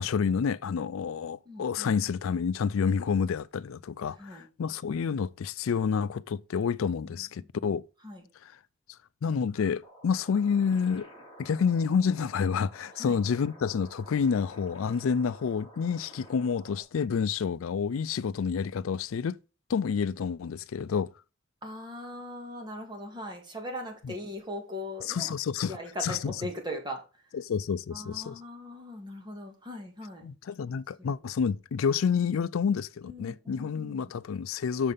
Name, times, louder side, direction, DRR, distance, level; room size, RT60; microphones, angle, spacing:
voice 1, 0.0-7.9 8.4-8.5 9.2-11.1 11.4-19.4 19.7-21.1 24.0-24.1 25.1-26.3 27.3-28.4 30.2-34.9, left 6 dB, 80° left, 0.4 m, -29 dB
voice 2, 1.5-1.9 4.2-4.5 7.0-7.5 8.0-8.2 13.0-13.2 21.6-25.3 25.7-27.0 27.9-30.2 30.7-30.8 33.0-34.1, left 1 dB, 20° right, 2.1 m, -40 dB
sound 1, 9.8-16.8, equal, 25° left, 2.4 m, -52 dB
6.6 x 5.5 x 6.7 m
head